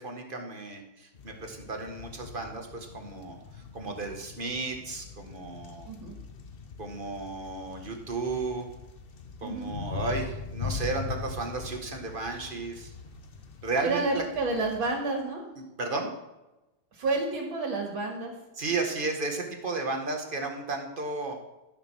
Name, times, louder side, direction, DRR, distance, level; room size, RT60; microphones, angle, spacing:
voice 1, 0.0-5.9 6.8-8.7 9.4-12.9 13.6-14.2 15.8-16.1 18.6-21.4, right 3 dB, 30° right, 3 dB, 1.4 m, -33 dB
sound 1, 1.1-14.9, left 5 dB, 55° left, 0.6 m, -41 dB
voice 2, 13.8-15.4 16.9-18.3, right 3 dB, 70° right, 0 dB, 2.8 m, -30 dB
14.0 x 6.4 x 6.1 m, 1.0 s
omnidirectional pair, 2.3 m